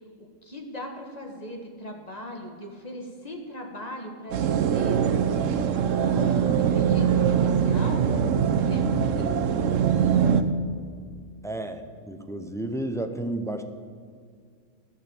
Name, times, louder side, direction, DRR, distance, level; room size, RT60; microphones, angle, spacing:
voice 1, 0.4-5.2 5.9-8.1 8.7-9.9, equal, 30° left, 2 dB, 1.7 m, -38 dB
sound 1, 4.3-10.4, right 8 dB, 80° right, 1.1 m, -22 dB
voice 2, 11.4-13.6, right 1 dB, 5° left, 7 dB, 0.6 m, -32 dB
14.0 x 6.6 x 8.1 m, 2.1 s
omnidirectional pair, 1.3 m